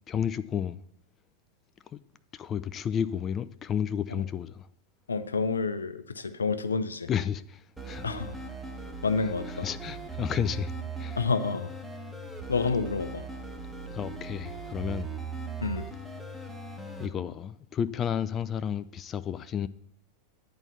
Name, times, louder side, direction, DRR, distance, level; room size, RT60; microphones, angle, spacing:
voice 1, 0.1-0.8 1.9-2.0 2.3-4.7 7.1-8.1 9.5-10.7 11.0-11.2 13.9-15.1 17.0-19.7, left 8 dB, 25° left, 0.4 m, -32 dB
voice 2, 5.1-7.1 8.0-8.4 9.0-9.7 11.2-11.7 12.5-13.2 15.6-15.9, left 4 dB, 75° left, 0.6 m, -29 dB
sound 1, 7.8-17.1, right 4 dB, 5° right, 1.1 m, -39 dB
10.5 x 4.4 x 6.9 m
figure-of-eight pair, 90°, 0 cm